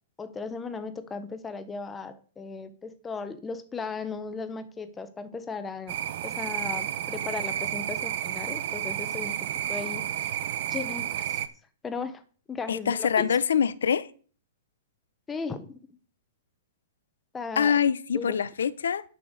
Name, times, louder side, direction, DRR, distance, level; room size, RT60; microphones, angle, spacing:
voice 1, 0.2-6.0 6.2-9.4 9.7-10.1 10.7-11.5 11.8-12.2 12.5-13.3 15.3-15.8 17.3-17.8 18.1-18.4, left 4 dB, 15° left, 1.2 m, -36 dB
sound 1, 5.9-11.5, right 11 dB, 55° right, 0.9 m, -31 dB
voice 2, 12.7-14.1 17.6-19.0, left 7 dB, 90° left, 0.8 m, -24 dB
10.5 x 6.0 x 6.5 m
hypercardioid pair, 145°, 0 cm